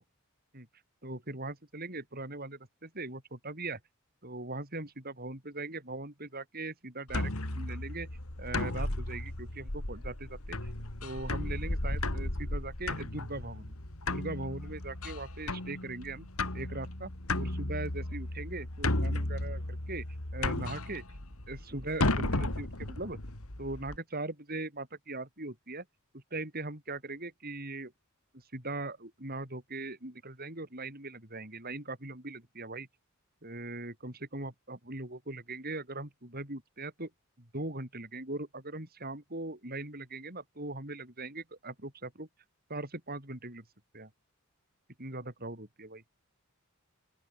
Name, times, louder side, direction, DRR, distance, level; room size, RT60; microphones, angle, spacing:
voice 1, 1.0-3.8 4.2-8.1 8.4-10.7 11.0-13.7 14.1-16.3 16.5-20.0 20.3-21.0 21.5-23.2 23.6-25.8 26.1-27.9 28.3-32.9 33.4-37.1 37.4-42.3 42.7-43.6 43.9-44.1 45.0-46.0, right 2 dB, 45° right, 6.5 m, -40 dB
sound 1, 7.1-24.0, left 2 dB, 80° left, 3.1 m, -34 dB
open air
head